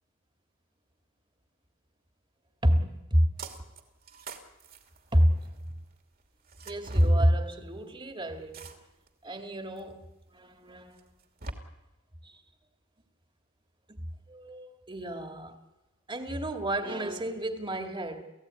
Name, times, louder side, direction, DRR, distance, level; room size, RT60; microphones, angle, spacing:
voice 1, 2.6-3.3 5.1-5.5 6.7-8.6 9.2-11.1 12.2-12.4 13.9-14.0 14.3-15.6 16.1-18.3, equal, 25° right, 2.1 m, -28 dB
sound 1, 3.4-3.8 4.1-5.6 6.5-7.2 8.5-9.1 9.8-9.9 11.0-11.5, right 2 dB, 45° right, 2.7 m, -41 dB
30.0 x 16.0 x 9.8 m
head